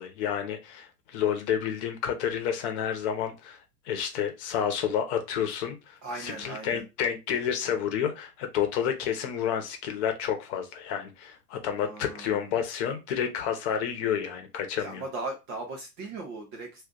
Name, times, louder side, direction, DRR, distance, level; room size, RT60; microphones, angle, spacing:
voice 1, 0.0-15.0, left 8 dB, 45° left, 6 dB, 0.9 m, -30 dB
voice 2, 6.0-6.8 11.8-12.5 14.8-16.8, right 2 dB, 20° right, 1 dB, 0.4 m, -38 dB
2.5 x 2.3 x 3.7 m, 0.25 s
hypercardioid pair, 110°, 48 cm